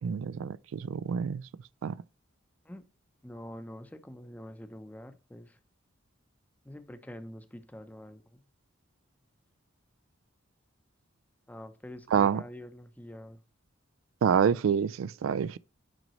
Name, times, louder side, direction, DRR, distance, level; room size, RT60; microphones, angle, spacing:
voice 1, 0.0-1.5 1.8-2.0 12.1-12.4 14.2-15.6, right 7 dB, 80° right, 0.3 m, -27 dB
voice 2, 3.2-5.6 6.6-8.4 11.5-13.4, left 1 dB, 10° left, 0.6 m, -45 dB
9.0 x 5.1 x 3.1 m
head